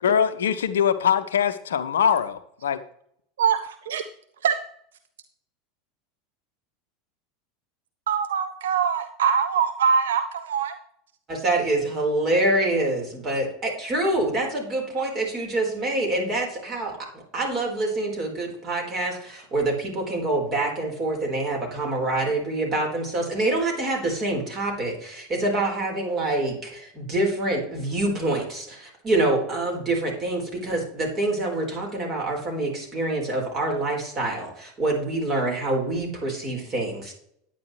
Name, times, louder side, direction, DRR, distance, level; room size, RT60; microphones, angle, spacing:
voice 1, 0.0-2.8, left 8 dB, 70° left, 12 dB, 0.6 m, -22 dB
voice 2, 3.4-4.0 4.4-4.5 8.1-10.8, right 7 dB, 65° right, 10 dB, 0.5 m, -23 dB
voice 3, 11.3-17.0 17.3-37.1, right 2 dB, 30° right, 0 dB, 4.5 m, -26 dB
10.5 x 9.2 x 3.3 m, 0.67 s
figure-of-eight pair, 80°, 0 cm